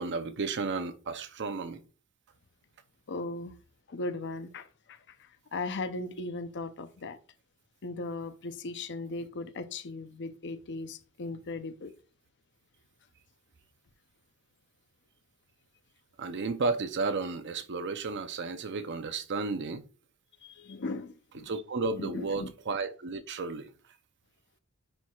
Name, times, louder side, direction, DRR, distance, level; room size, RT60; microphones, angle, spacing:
voice 1, 0.0-1.8 16.2-19.8 21.5-23.7, right 4 dB, 55° right, 0.6 m, -33 dB
voice 2, 3.1-3.5 3.9-7.2 7.8-11.9 20.4-21.5 22.0-22.5, left 2 dB, 55° left, 0.6 m, -38 dB
9.7 x 4.6 x 2.3 m
head